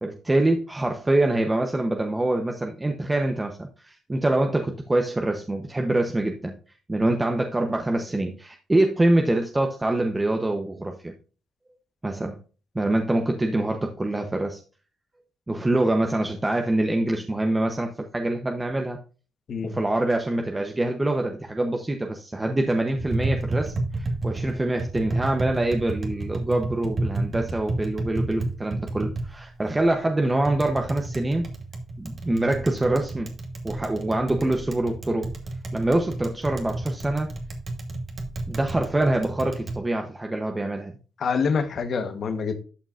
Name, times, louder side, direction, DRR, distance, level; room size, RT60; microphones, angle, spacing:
voice 1, 0.0-6.5 6.9-11.1 12.0-12.4 12.7-14.6 15.5-19.0 19.6-31.5 32.0-33.3 33.6-35.3 35.7-37.3 38.5-41.0, right 1 dB, 15° right, 0.9 m, -25 dB
Tap, 22.9-39.8, right 2 dB, 40° right, 1.7 m, -31 dB
voice 2, 41.2-42.5, left 5 dB, 55° left, 1.3 m, -26 dB
11.5 x 5.9 x 2.6 m
cardioid pair, 90°, 0 cm